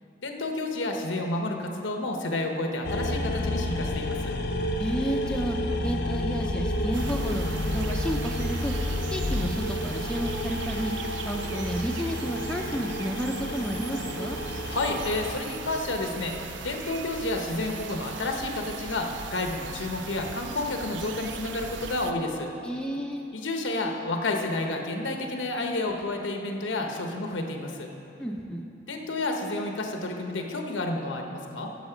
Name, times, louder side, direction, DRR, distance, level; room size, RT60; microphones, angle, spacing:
voice 1, 0.2-4.3 14.7-16.4 16.6-22.5 23.3-27.9 28.9-31.7, left 2 dB, 85° left, 3 dB, 1.0 m, -30 dB
sound 1, 2.8-15.3, left 1 dB, 55° left, 0.6 m, -30 dB
voice 2, 4.8-8.7 9.1-14.4 22.6-23.3 28.2-28.7, equal, 5° left, 1 dB, 0.4 m, -31 dB
sound 2, 6.9-22.1, right 5 dB, 75° right, 0.5 m, -39 dB
Tick-tock, 10.7-10.8 11.7-11.8 12.7-12.8 13.7-13.8 14.7-14.8 15.7-15.8 16.7-16.8 17.7-17.9, right 1 dB, 35° right, 0.9 m, -47 dB
10.5 x 7.3 x 5.0 m, 2.8 s
head